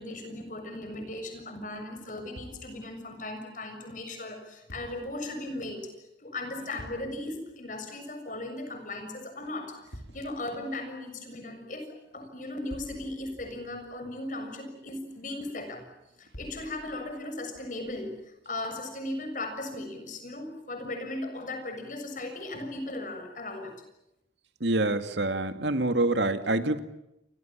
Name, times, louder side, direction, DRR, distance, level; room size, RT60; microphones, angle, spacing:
voice 1, 0.0-5.8 6.2-15.9 16.2-23.7, left 2 dB, 45° left, 6 dB, 6.9 m, -37 dB
sound 1, 2.4-3.1 4.7-5.2 6.8-7.4 9.9-10.5 12.7-14.1 16.3-17.2, equal, 90° left, 6.8 m, -47 dB
voice 2, 24.6-26.8, right 2 dB, 75° right, 9 dB, 2.2 m, -26 dB
29.0 x 25.5 x 7.4 m, 0.85 s
head